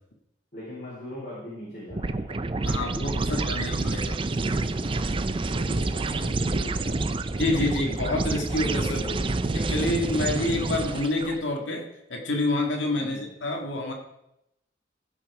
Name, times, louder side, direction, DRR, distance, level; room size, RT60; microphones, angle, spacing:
voice 1, 0.5-3.6 4.5-7.4 13.0-13.2, left 1 dB, 40° left, -8 dB, 4.1 m, -42 dB
sound 1, 1.9-11.4, right 2 dB, 30° right, 0.4 m, -28 dB
voice 2, 2.6-4.2 7.3-9.2 9.5-13.9, left 2 dB, 85° left, 1 dB, 1.8 m, -28 dB
15.0 x 6.3 x 4.8 m, 0.84 s
head